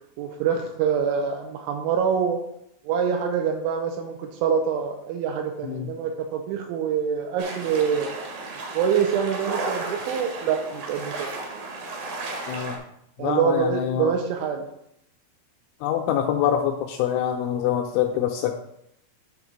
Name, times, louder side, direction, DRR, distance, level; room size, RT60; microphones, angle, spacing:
voice 1, 0.2-2.4 2.8-8.1 8.7-11.3 13.2-14.7, right 7 dB, 85° right, 4 dB, 2.9 m, -25 dB
sound 1, 7.4-12.8, right 3 dB, 60° right, 2.6 m, -34 dB
voice 2, 12.5-12.8 13.2-14.1 15.8-18.5, left 10 dB, 85° left, 2 dB, 2.7 m, -25 dB
9.9 x 3.9 x 5.8 m, 0.74 s
omnidirectional pair, 5.9 m